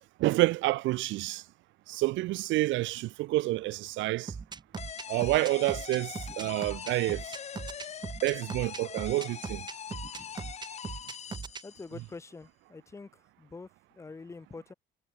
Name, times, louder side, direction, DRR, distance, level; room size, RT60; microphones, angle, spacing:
voice 1, 0.2-1.4 1.9-4.3 5.1-7.2 8.2-9.6, right 18 dB, 75° right, 1.0 m, -28 dB
sound 1, 4.3-11.6, right 5 dB, 20° right, 3.2 m, -39 dB
sound 2, 4.8-12.1, left 8 dB, 35° left, 3.6 m, -42 dB
voice 2, 11.6-14.7, left 4 dB, 15° left, 1.9 m, -46 dB
cardioid pair, 165°, 20 cm